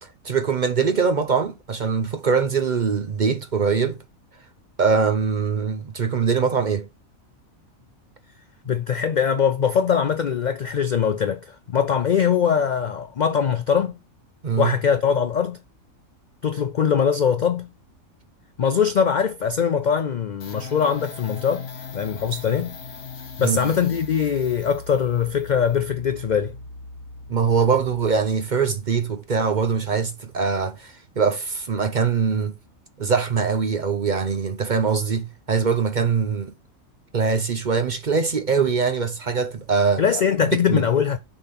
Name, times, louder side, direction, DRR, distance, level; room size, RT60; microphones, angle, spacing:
voice 1, 0.0-4.0 4.8-6.9 14.4-14.7 23.4-23.7 27.3-32.5 33.0-36.5 37.1-40.0 40.7-40.8, right 5 dB, 45° right, 0.7 m, -22 dB
voice 2, 8.7-13.9 14.6-15.6 16.4-17.7 18.6-21.7 21.9-22.8 23.4-26.5 40.0-41.2, left 7 dB, 80° left, 0.4 m, -22 dB
sound 1, 20.4-28.8, left 4 dB, 50° left, 1.3 m, -39 dB
6.9 x 3.8 x 5.9 m
omnidirectional pair, 1.4 m